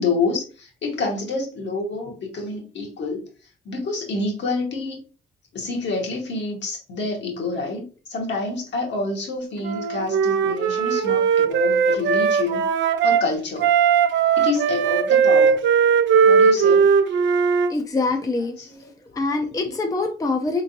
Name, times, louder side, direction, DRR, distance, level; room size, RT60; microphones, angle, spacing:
voice 1, 0.0-3.2 3.6-5.0 5.5-12.6 13.0-13.7 14.4-15.6 16.2-16.9 18.6-18.8, left 3 dB, 65° left, 0 dB, 1.6 m, -27 dB
Wind instrument woodwind instrument, 9.6-13.2 13.6-17.7, right 6 dB, 70° right, 0.6 m, -18 dB
voice 2, 17.7-18.6 19.1-20.6, left 3 dB, 15° left, 4 dB, 0.6 m, -24 dB
3.8 x 3.7 x 2.7 m, 0.35 s
cardioid pair, 90°, 20 cm